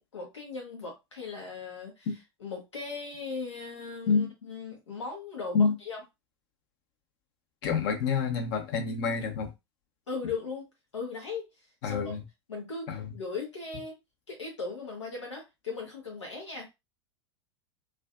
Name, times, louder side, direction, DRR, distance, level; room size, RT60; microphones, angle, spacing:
voice 1, 0.1-6.0 10.1-11.5 11.8-12.1 12.5-13.9 14.3-16.7, left 4 dB, 85° left, 0.8 m, -38 dB
voice 2, 7.6-9.5 11.8-12.2 12.9-13.1, left 5 dB, 50° left, 0.8 m, -27 dB
2.5 x 2.2 x 2.4 m
hypercardioid pair, 95°, 15 cm